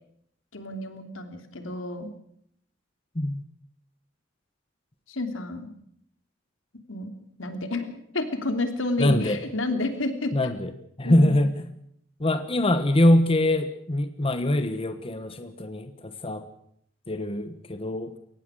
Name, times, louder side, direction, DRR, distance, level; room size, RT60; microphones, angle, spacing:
voice 1, 0.5-2.1 5.1-5.7 6.9-7.1 7.4-10.3 11.0-11.5, left 2 dB, 85° left, 7 dB, 3.1 m, -30 dB
voice 2, 9.0-9.4 10.3-10.7 11.0-11.6 12.2-16.5 17.1-18.1, left 1 dB, 30° left, 9 dB, 1.3 m, -23 dB
23.0 x 18.5 x 6.5 m, 0.69 s
head